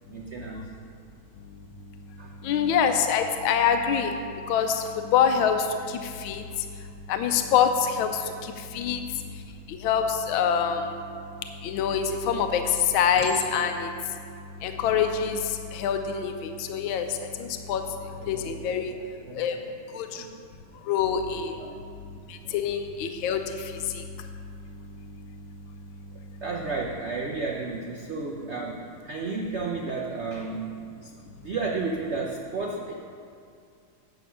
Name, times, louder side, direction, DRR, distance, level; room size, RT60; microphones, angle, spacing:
voice 1, 0.1-0.7 2.2-2.3 18.1-19.6 20.0-20.4 21.6-21.8 22.5-22.6 26.4-30.7 31.0-31.1 31.4-32.9, right 4 dB, 80° right, 0 dB, 0.6 m, -33 dB
voice 2, 2.4-4.1 4.5-4.8 5.1-5.6 6.2-6.4 7.1-8.1 8.7-9.0 9.8-10.9 11.6-12.6 12.9-13.9 14.6-15.4 15.7-17.1 17.7-17.8 18.3-18.9 19.4-19.5 19.9-20.2 20.9-21.5 22.5-23.4, left 7 dB, 85° left, 6 dB, 1.4 m, -24 dB
Chink clink, 13.2-14.0 14.7-15.0, left 1 dB, 35° left, 1.4 m, -40 dB
9.1 x 6.9 x 5.6 m, 2.3 s
omnidirectional pair, 2.2 m